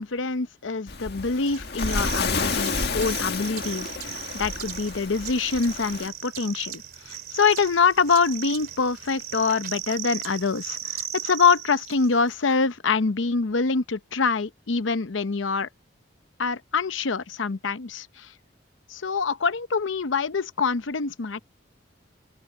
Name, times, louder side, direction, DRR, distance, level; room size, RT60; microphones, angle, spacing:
voice 1, 0.0-15.7 16.4-18.3 18.9-21.4, left 5 dB, 85° left, 0.8 m, -25 dB
Waves surf, 0.9-6.1, left 4 dB, 55° left, 2.0 m, -30 dB
sound 1, 1.4-12.3, right 11 dB, 50° right, 3.5 m, -37 dB
open air
head